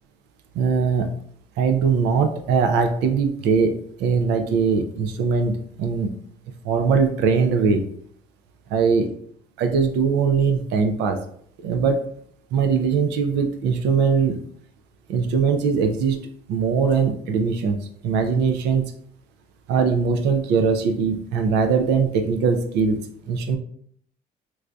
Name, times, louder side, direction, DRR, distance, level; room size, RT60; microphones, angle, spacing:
voice 1, 0.6-1.1 1.6-6.1 6.6-7.8 8.7-9.1 9.6-11.2 11.6-12.1 12.5-14.4 15.1-18.9 19.7-23.6, right 5 dB, 85° right, 5 dB, 0.4 m, -21 dB
4.5 x 2.6 x 2.2 m, 0.66 s
cardioid pair, 110°, 17 cm